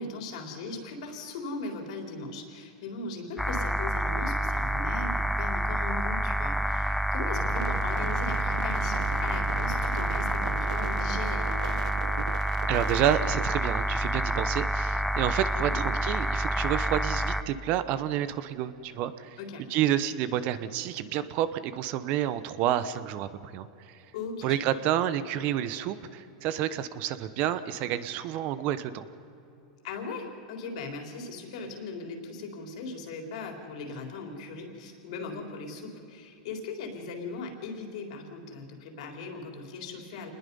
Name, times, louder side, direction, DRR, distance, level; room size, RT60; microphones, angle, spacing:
voice 1, 0.0-11.8 15.6-15.8 19.4-19.7 24.1-24.6 29.8-40.3, left 3 dB, 65° left, 3 dB, 3.9 m, -39 dB
sound 1, 3.4-17.4, equal, 5° left, 0.6 m, -28 dB
sound 2, 7.3-13.5, right 9 dB, 85° right, 1.0 m, -39 dB
voice 2, 12.7-19.4 19.7-23.9 24.4-29.0, right 11 dB, 40° right, 14 dB, 0.9 m, -29 dB
27.5 x 20.5 x 5.5 m, 2.8 s
supercardioid pair, 150°, 4 cm